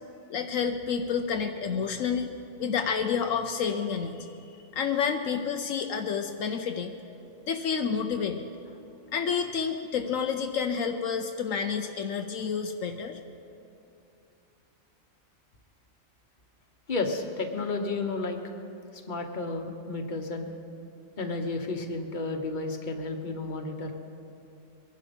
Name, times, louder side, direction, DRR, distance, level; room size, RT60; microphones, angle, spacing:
voice 1, 0.3-2.3 2.6-4.4 4.7-6.9 7.4-8.5 9.1-13.2, left 6 dB, 75° left, 5 dB, 1.1 m, -29 dB
voice 2, 16.9-18.4 19.1-20.5 21.2-23.9, left 3 dB, 35° left, 4 dB, 1.3 m, -32 dB
23.0 x 11.5 x 5.3 m, 2.7 s
omnidirectional pair, 1.4 m